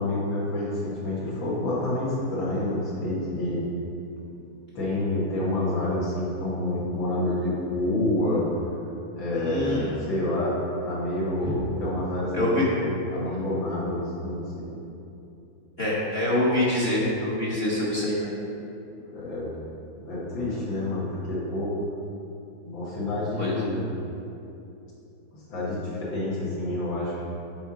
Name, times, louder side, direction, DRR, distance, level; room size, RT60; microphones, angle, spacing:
voice 1, 0.0-3.6 4.7-8.5 9.1-10.6 10.8-12.8 13.1-14.7 19.0-19.5 20.0-21.8 22.6-23.9 25.3-27.2, left 1 dB, 75° left, -7 dB, 2.3 m, -28 dB
voice 2, 9.3-9.9 11.4-11.6 12.3-12.7 15.8-18.3 23.4-23.5, left 1 dB, 40° left, -7 dB, 1.1 m, -25 dB
7.9 x 4.2 x 4.9 m, 2.8 s
omnidirectional pair, 2.1 m